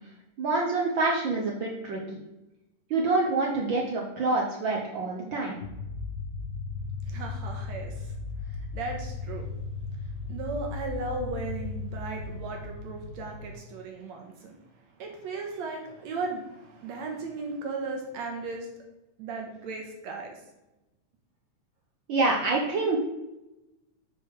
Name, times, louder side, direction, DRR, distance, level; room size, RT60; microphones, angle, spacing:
voice 1, 0.4-2.2 2.9-5.6 22.1-23.0, right 3 dB, 85° right, -1 dB, 1.0 m, -26 dB
sound 1, 5.6-13.6, left 3 dB, 60° left, 1.5 m, -36 dB
voice 2, 7.1-8.1 8.7-9.5 10.3-14.6 15.0-18.7 19.2-20.3, right 3 dB, 70° right, 2 dB, 2.1 m, -36 dB
8.2 x 5.1 x 4.8 m, 0.98 s
omnidirectional pair, 3.5 m